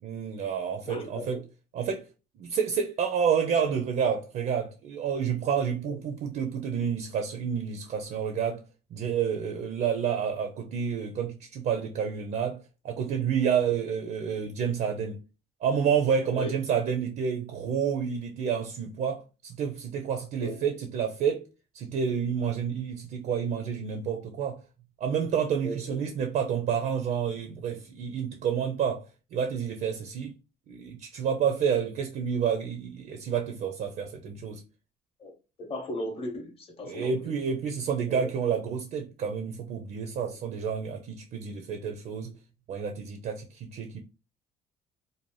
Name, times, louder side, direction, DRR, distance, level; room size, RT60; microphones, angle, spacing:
voice 1, 0.0-1.4 1.7-2.0 2.4-8.6 8.9-15.2 15.6-21.5 21.7-24.6 25.0-30.3 30.7-34.6 36.8-42.4 42.7-44.0, right 7 dB, 55° right, 0.4 m, -29 dB
voice 2, 0.9-1.3 5.9-6.0 16.3-16.5 20.4-20.6 25.6-26.0 35.2-35.3 35.6-37.3 38.1-38.3, left 1 dB, 35° left, 0.8 m, -36 dB
2.6 x 2.0 x 3.0 m
cardioid pair, 110°, 17 cm